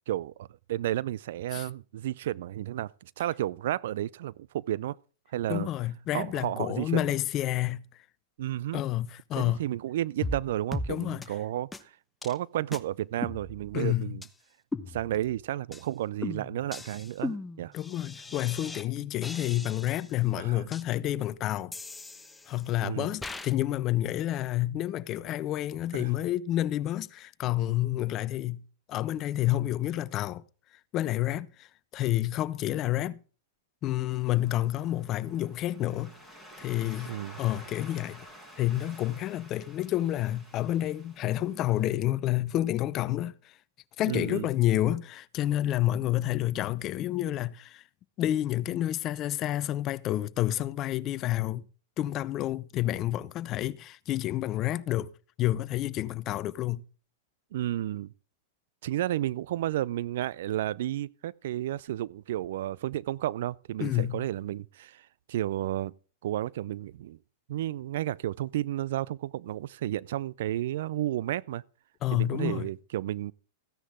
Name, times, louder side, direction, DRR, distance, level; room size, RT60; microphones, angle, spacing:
voice 1, 0.1-5.0 5.3-5.7 6.1-7.2 8.4-8.8 9.4-11.9 12.2-14.2 14.9-17.7 20.4-20.6 22.8-23.1 25.9-26.1 37.1-37.4 44.1-44.5 57.5-58.1 58.8-65.9 66.2-67.2 67.5-71.6 72.1-73.3, right 13 dB, 65° right, 0.5 m, -32 dB
voice 2, 5.5-7.8 8.7-9.6 10.9-11.2 13.7-14.2 17.7-21.7 22.5-28.6 28.9-30.4 30.9-31.7 31.9-33.2 33.8-36.1 36.6-38.3 38.6-43.3 44.0-47.8 48.2-51.6 52.0-55.1 55.4-56.8 63.8-64.2 72.0-72.7, left 14 dB, 35° left, 0.7 m, -29 dB
sound 1, 10.2-10.4 10.7-10.9 11.2-11.3 11.7-11.8 12.2-12.4 12.7-12.8 13.2-13.9 14.2-14.3 14.7-15.3 15.7-15.9 16.2-18.9 19.2-20.1 20.7-20.8 21.7-22.7 23.2-23.5, left 2 dB, 10° left, 1.0 m, -38 dB
Waves surf, 34.3-42.0, equal, 10° right, 6.4 m, -51 dB
15.0 x 10.0 x 3.6 m
hypercardioid pair, 115°, 0 cm